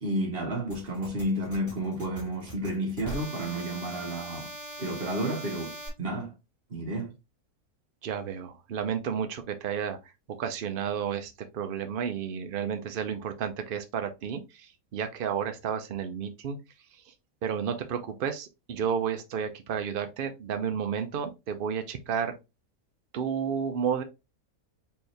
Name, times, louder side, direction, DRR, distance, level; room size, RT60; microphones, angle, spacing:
voice 1, 0.0-4.5 4.8-6.3 6.7-7.1, right 1 dB, 40° right, 1.3 m, -31 dB
sound 1, 0.7-5.9, equal, 10° left, 1.6 m, -41 dB
voice 2, 8.0-10.0 10.4-16.6 17.1-17.2 17.4-22.4 23.1-24.0, right 7 dB, 70° right, 0.5 m, -32 dB
4.5 x 3.2 x 3.2 m
omnidirectional pair, 1.6 m